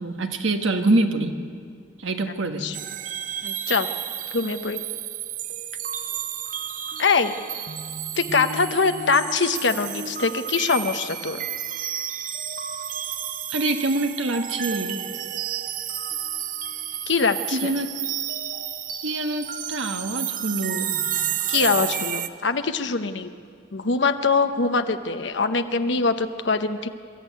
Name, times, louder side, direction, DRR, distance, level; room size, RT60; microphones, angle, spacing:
voice 1, 0.0-1.4 2.0-2.7 13.5-15.0 17.5-17.9 19.0-20.9, right 2 dB, 80° right, 6 dB, 1.4 m, -25 dB
sound 1, 2.7-22.3, right 9 dB, 40° right, 0.6 m, -31 dB
voice 2, 3.4-3.9 4.3-4.8 7.0-7.3 8.2-11.4 17.1-17.7 21.5-23.3 23.7-26.9, left 4 dB, 65° left, 8 dB, 0.8 m, -23 dB
24.0 x 13.0 x 9.3 m, 2.2 s
head